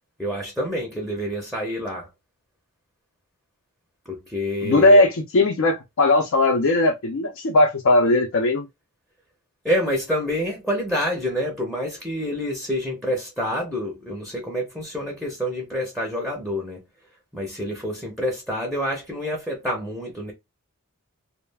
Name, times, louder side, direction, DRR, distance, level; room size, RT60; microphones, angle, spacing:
voice 1, 0.2-2.1 4.1-5.0 9.6-16.8 17.3-20.3, equal, ahead, 0.6 m, -27 dB
voice 2, 4.6-8.7, left 2 dB, 60° left, 0.5 m, -18 dB
2.3 x 2.1 x 3.2 m
head